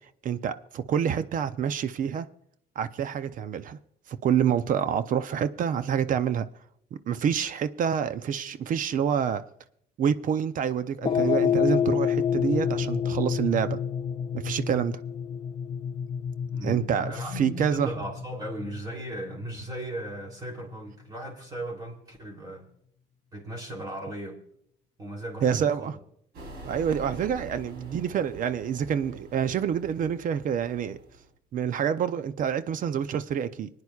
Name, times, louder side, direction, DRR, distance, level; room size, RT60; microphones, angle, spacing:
voice 1, 0.2-2.3 2.8-3.8 4.1-6.5 6.9-9.4 10.0-13.8 14.3-15.0 16.6-17.9 25.4-25.9 26.6-31.0 31.5-33.7, right 8 dB, 50° right, 0.6 m, -27 dB
sound 1, 11.0-19.5, left 8 dB, 30° left, 0.5 m, -28 dB
voice 2, 16.5-22.7 23.3-24.4 25.0-25.9, right 1 dB, 25° right, 3.2 m, -37 dB
sound 2, 26.3-31.3, right 1 dB, 75° right, 3.4 m, -45 dB
25.5 x 9.7 x 2.4 m
cardioid pair, 110°, 17 cm